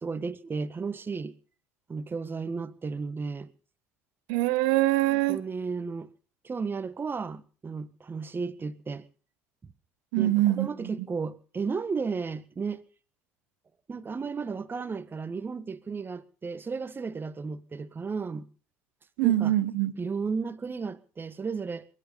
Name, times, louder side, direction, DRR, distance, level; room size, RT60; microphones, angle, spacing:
voice 1, 0.0-1.3 1.9-3.5 5.1-6.1 6.4-9.1 10.2-12.8 13.9-18.5 19.2-19.5 20.0-21.8, right 5 dB, 30° right, 1.6 m, -34 dB
voice 2, 4.3-5.4 10.1-10.9 19.2-19.9, right 16 dB, 75° right, 1.2 m, -24 dB
22.5 x 11.0 x 5.5 m
hypercardioid pair, 65°, 8 cm